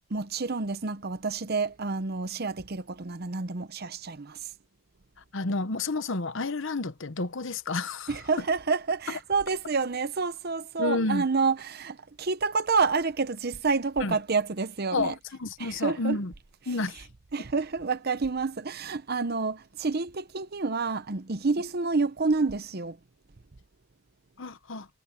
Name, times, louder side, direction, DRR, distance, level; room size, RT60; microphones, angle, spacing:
voice 1, 0.1-4.4 8.1-15.1 15.6-16.2 17.3-23.0, right 4 dB, 45° right, 0.8 m, -28 dB
voice 2, 5.3-8.2 9.1-9.2 10.8-11.3 14.0-14.1 14.9-16.3 16.7-17.1 24.4-24.9, left 3 dB, 60° left, 1.0 m, -30 dB
head